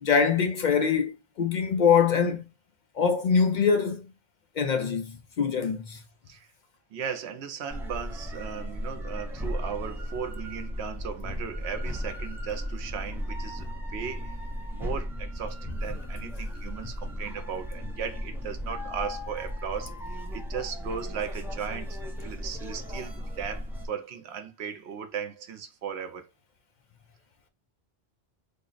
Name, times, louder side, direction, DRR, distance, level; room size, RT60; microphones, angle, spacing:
voice 1, 0.0-2.5 3.0-4.0 4.6-6.0, left 6 dB, 60° left, 0.6 m, -24 dB
voice 2, 6.9-14.4 14.7-26.3, right 7 dB, 85° right, 0.9 m, -37 dB
sound 1, 7.7-23.9, equal, 5° right, 0.5 m, -35 dB
3.6 x 2.0 x 3.9 m
omnidirectional pair, 1.1 m